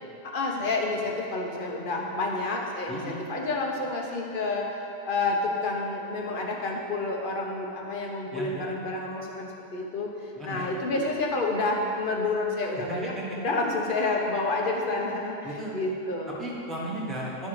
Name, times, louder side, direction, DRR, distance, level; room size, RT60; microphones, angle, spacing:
voice 1, 0.2-4.7 5.1-15.4 15.7-16.4, left 2 dB, 40° left, 0 dB, 1.0 m, -29 dB
voice 2, 2.9-3.2 8.3-8.6 10.3-10.7 12.9-13.4 15.4-15.7 16.4-17.5, right 1 dB, ahead, -6 dB, 1.3 m, -35 dB
10.5 x 5.5 x 4.8 m, 2.8 s
omnidirectional pair, 1.4 m